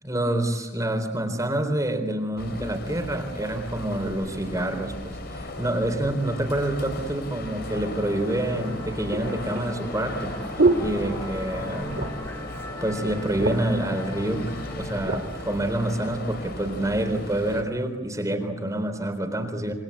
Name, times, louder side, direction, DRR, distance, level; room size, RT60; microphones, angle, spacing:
voice 1, 0.0-10.3 10.8-12.0 12.8-19.7, right 1 dB, 15° right, 5 dB, 4.0 m, -27 dB
sound 1, 2.4-17.6, left 1 dB, 55° left, 4.0 m, -36 dB
sound 2, 7.6-7.7 8.5-11.6 11.9-12.4 12.7-12.8 13.1-13.8 14.5-15.3 15.9-16.1, right 2 dB, 60° right, 2.7 m, -27 dB
Musical instrument, 7.7-15.6, equal, 10° left, 2.0 m, -40 dB
28.0 x 25.0 x 8.5 m, 1.1 s
head